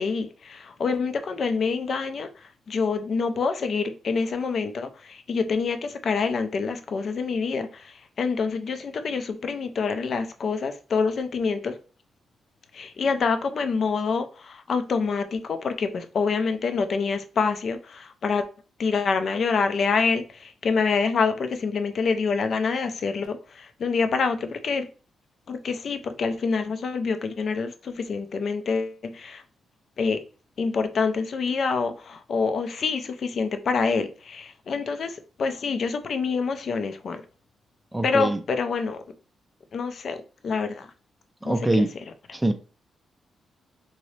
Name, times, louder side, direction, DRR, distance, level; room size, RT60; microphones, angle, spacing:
voice 1, 0.0-11.8 12.7-18.4 18.8-24.9 25.5-29.4 30.0-30.2 30.6-37.2 38.0-39.0 39.7-40.9 41.4-41.9, left 5 dB, 55° left, 0.4 m, -26 dB
voice 2, 37.9-38.4 41.4-41.9 42.3-42.5, right 1 dB, 10° right, 0.3 m, -23 dB
2.9 x 2.7 x 3.1 m
cardioid pair, 105°, 0 cm